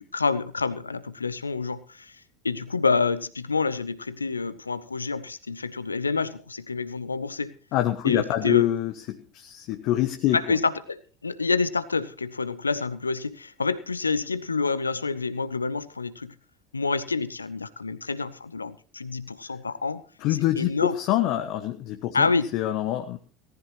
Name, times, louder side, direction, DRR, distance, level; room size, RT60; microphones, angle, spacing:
voice 1, 0.0-7.5 8.0-8.7 10.3-16.3 16.7-20.0 20.6-20.9 22.1-22.5, left 4 dB, 80° left, 16 dB, 0.9 m, -28 dB
voice 2, 7.7-10.6 20.2-23.2, left 13 dB, 50° left, 7 dB, 1.2 m, -25 dB
18.5 x 14.5 x 3.1 m, 0.38 s
figure-of-eight pair, 75°, 0 cm